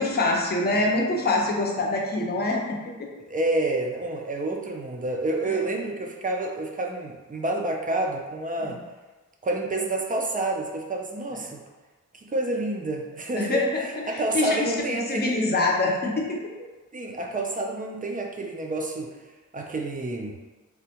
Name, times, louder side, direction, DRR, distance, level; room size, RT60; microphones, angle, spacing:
voice 1, 0.0-3.1 5.5-5.6 8.6-8.8 13.3-14.7 15.1-16.5, left 2 dB, 30° left, -1 dB, 0.5 m, -25 dB
voice 2, 3.3-8.8 9.4-11.6 12.1-15.4 16.9-19.1 19.5-20.3, right 2 dB, 25° right, 1 dB, 0.4 m, -29 dB
3.4 x 2.1 x 2.8 m, 1.2 s
wide cardioid pair, 120°, 32 cm